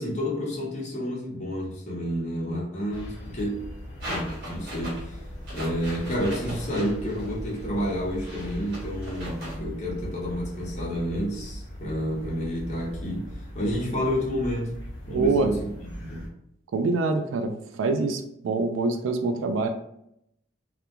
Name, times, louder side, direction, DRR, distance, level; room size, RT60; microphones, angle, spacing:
voice 1, 0.0-3.6 4.0-5.2 5.5-14.8 15.1-16.3, equal, 35° left, -5 dB, 0.7 m, -30 dB
sound 1, 2.9-16.3, equal, 75° left, 0.8 m, -39 dB
sound 2, 4.0-9.6, equal, 50° right, 1.0 m, -39 dB
voice 2, 15.1-15.5 16.7-19.7, right 3 dB, 80° right, 6 dB, 0.3 m, -25 dB
2.4 x 2.1 x 2.9 m, 0.76 s
head